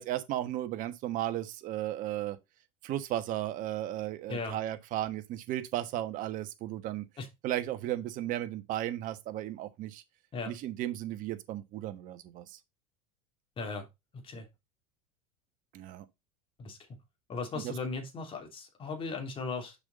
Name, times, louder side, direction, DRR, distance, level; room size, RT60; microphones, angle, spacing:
voice 1, 0.0-2.4 2.8-7.0 7.4-10.0 10.5-12.6 15.7-16.0 17.5-17.7, right 13 dB, 50° right, 1.3 m, -35 dB
voice 2, 13.6-13.9 14.2-14.5 16.6-16.8 17.3-19.8, left 4 dB, 30° left, 2.9 m, -37 dB
6.9 x 5.6 x 4.1 m
supercardioid pair, 105°, 17 cm